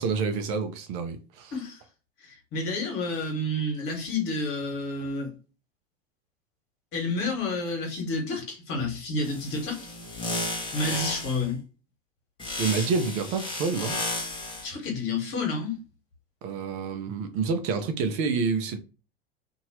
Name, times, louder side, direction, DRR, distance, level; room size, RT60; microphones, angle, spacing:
voice 1, 0.0-1.5 12.6-14.0 16.4-18.8, right 5 dB, 45° right, 0.7 m, -28 dB
voice 2, 2.2-5.3 6.9-9.9 10.7-11.6 14.6-15.8, left 2 dB, 45° left, 1.7 m, -30 dB
sound 1, 9.2-11.5 12.4-14.7, left 2 dB, 15° left, 1.2 m, -33 dB
2.8 x 2.7 x 3.0 m
hypercardioid pair, 90°, 31 cm